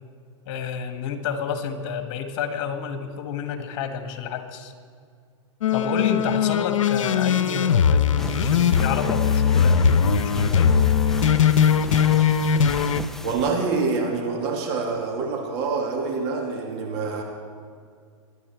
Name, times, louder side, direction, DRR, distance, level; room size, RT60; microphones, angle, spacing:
voice 1, 0.5-4.7 5.7-10.7, left 7 dB, 50° left, 7 dB, 1.9 m, -30 dB
sound 1, 5.6-13.0, left 7 dB, 85° left, 0.8 m, -20 dB
sound 2, 8.2-13.5, left 1 dB, 5° left, 0.5 m, -36 dB
voice 2, 13.2-17.2, right 4 dB, 50° right, 1 dB, 2.5 m, -26 dB
22.0 x 10.0 x 4.6 m, 2.2 s
hypercardioid pair, 120°, 16 cm